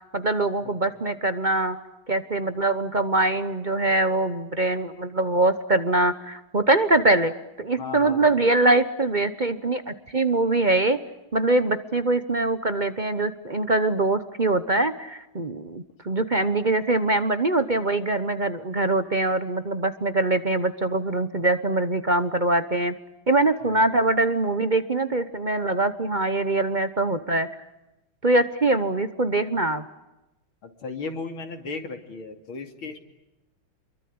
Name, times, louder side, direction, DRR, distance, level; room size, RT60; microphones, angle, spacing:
voice 1, 0.1-1.8 2.1-7.3 7.6-11.0 11.3-22.9 23.3-27.5 28.2-29.8, right 2 dB, 35° right, 11 dB, 0.8 m, -23 dB
voice 2, 7.8-8.3 23.6-23.8 30.6-33.0, left 4 dB, 85° left, 5 dB, 3.6 m, -35 dB
28.5 x 23.0 x 8.6 m, 0.96 s
omnidirectional pair, 2.2 m